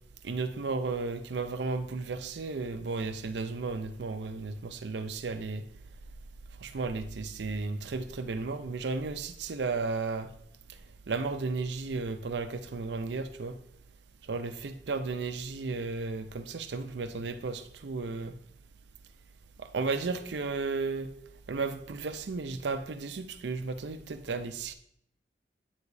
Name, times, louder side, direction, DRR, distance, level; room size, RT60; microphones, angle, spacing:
voice 1, 0.2-5.6 6.6-10.3 11.1-13.6 14.3-18.4 19.6-21.1 21.5-24.7, right 3 dB, 80° right, 9 dB, 0.5 m, -34 dB
9.0 x 4.9 x 2.7 m, 0.70 s
head